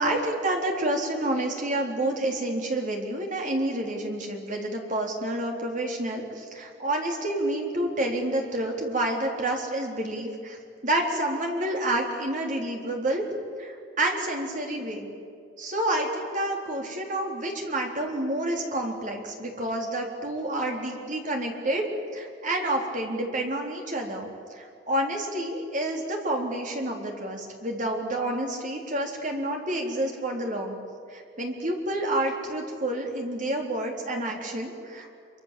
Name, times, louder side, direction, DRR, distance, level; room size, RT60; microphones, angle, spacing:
voice 1, 0.0-10.6 10.8-13.2 13.6-15.1 15.6-30.8 31.1-35.1, right 1 dB, 45° right, 1 dB, 3.7 m, -29 dB
26.5 x 24.5 x 7.7 m, 2.3 s
head